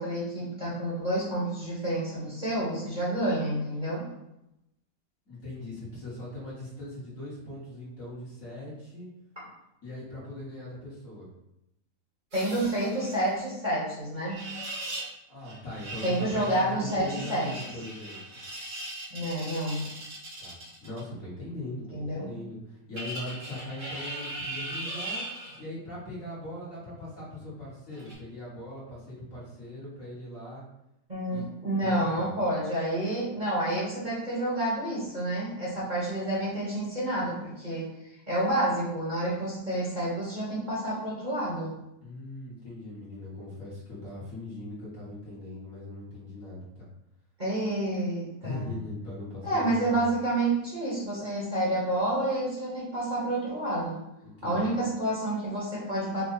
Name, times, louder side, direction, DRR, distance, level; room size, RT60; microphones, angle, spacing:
voice 1, 0.0-4.1 12.3-14.5 16.0-17.5 19.1-19.9 21.9-22.3 31.1-37.9 38.3-41.8 47.4-48.7 49.4-54.0 54.4-56.3, right 1 dB, 30° right, -7 dB, 1.3 m, -29 dB
voice 2, 5.3-9.1 9.8-11.3 15.3-18.2 20.4-25.3 25.6-30.6 31.3-31.5 31.8-32.3 42.0-46.9 48.4-50.1 54.2-54.8, left 1 dB, 50° left, -7 dB, 1.8 m, -40 dB
sound 1, 12.3-13.4 14.3-15.1 15.4-21.0 22.9-25.6 27.9-28.1, right 1 dB, 75° right, 2.3 m, -39 dB
5.0 x 2.3 x 4.0 m, 0.84 s
omnidirectional pair, 1.8 m